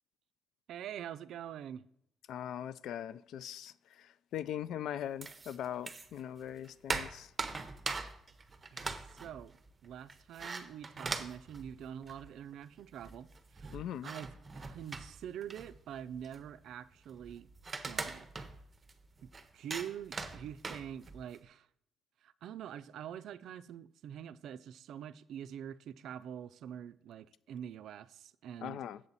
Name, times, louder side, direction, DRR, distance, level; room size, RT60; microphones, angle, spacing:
voice 1, 0.7-1.9 8.7-9.6 9.8-17.5 17.8-18.3 19.2-21.7 22.2-28.8, right 9 dB, 65° right, 0.4 m, -45 dB
voice 2, 2.3-7.3 13.7-14.1 28.6-29.0, left 10 dB, 70° left, 0.3 m, -41 dB
sound 1, 5.2-6.2 6.5-12.4 12.7-12.8 13.0-21.4, right 4 dB, 25° right, 0.7 m, -42 dB
7.5 x 7.2 x 4.0 m
cardioid pair, 135°, 0 cm